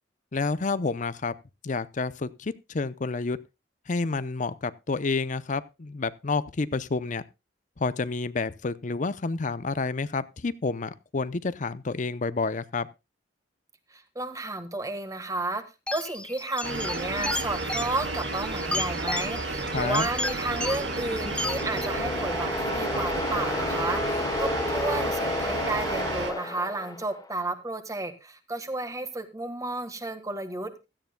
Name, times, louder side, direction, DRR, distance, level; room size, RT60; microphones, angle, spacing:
voice 1, 0.3-1.4 1.6-3.4 3.9-7.2 7.8-12.9 19.6-20.1, left 3 dB, 45° left, 0.6 m, -29 dB
voice 2, 13.9-15.6 15.9-30.9, right 2 dB, 20° right, 1.6 m, -32 dB
sound 1, 15.9-21.9, left 2 dB, 5° left, 0.8 m, -34 dB
sound 2, 16.6-26.3, right 2 dB, 90° right, 2.2 m, -32 dB
sound 3, 20.4-27.3, left 2 dB, 20° left, 1.5 m, -32 dB
16.0 x 13.0 x 2.2 m
head